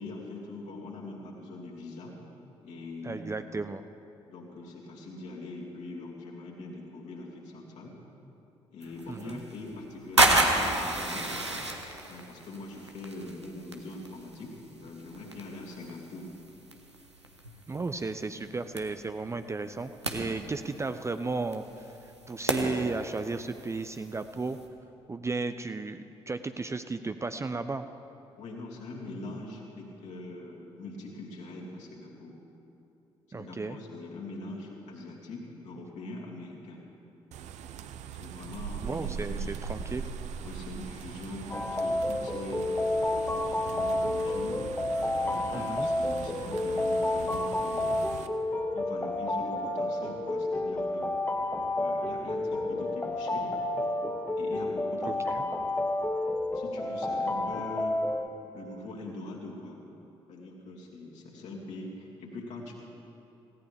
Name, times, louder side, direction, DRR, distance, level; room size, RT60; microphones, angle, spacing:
voice 1, 0.0-2.2 2.6-3.3 4.2-8.0 8.7-11.3 12.1-16.3 20.3-20.5 28.4-32.4 33.3-36.8 38.1-39.6 40.4-42.7 43.3-44.6 45.1-48.0 48.7-51.1 51.8-53.5 54.4-55.4 56.5-58.0 58.5-59.8 60.3-62.7, left 2 dB, 55° left, -3 dB, 2.8 m, -42 dB
voice 2, 3.0-3.8 9.1-9.4 17.7-24.6 25.1-27.9 33.3-33.8 38.8-40.0 45.5-45.9 55.0-55.4, right 3 dB, 20° right, 10 dB, 0.6 m, -34 dB
sound 1, 8.8-24.7, right 2 dB, 90° right, 0.8 m, -33 dB
sound 2, 37.3-48.3, right 7 dB, 55° right, 0.7 m, -41 dB
sound 3, 41.5-58.3, left 2 dB, 15° left, 1.0 m, -30 dB
18.0 x 16.5 x 3.5 m, 2.8 s
figure-of-eight pair, 45°, 14 cm